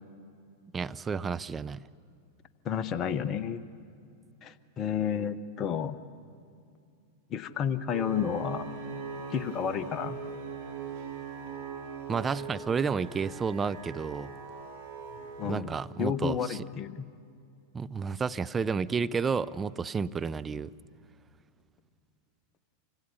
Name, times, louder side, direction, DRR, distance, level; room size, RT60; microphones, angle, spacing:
voice 1, 0.7-1.9 12.1-14.3 15.4-16.6 17.7-20.7, right 5 dB, 15° right, 13 dB, 0.5 m, -31 dB
voice 2, 2.6-3.6 4.4-6.0 7.3-8.8 9.3-10.2 15.4-17.0, left 8 dB, 30° left, 14 dB, 1.0 m, -31 dB
sound 1, 7.9-15.5, right 5 dB, 60° right, 5.3 m, -40 dB
28.0 x 25.0 x 5.5 m, 2.4 s
figure-of-eight pair, 90°, 0 cm